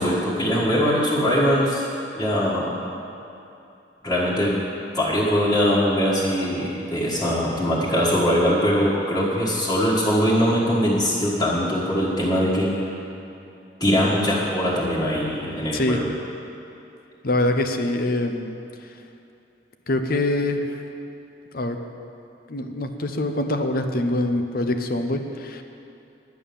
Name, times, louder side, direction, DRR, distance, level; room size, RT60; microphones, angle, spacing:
voice 1, 0.0-1.8 2.1-2.7 4.0-4.5 4.9-12.8 13.8-16.1, equal, 20° left, -10 dB, 1.7 m, -21 dB
voice 2, 17.2-18.6 19.9-20.7 21.5-21.8 22.5-25.6, left 1 dB, 55° left, 6 dB, 0.8 m, -24 dB
11.0 x 9.4 x 7.0 m, 2.7 s
head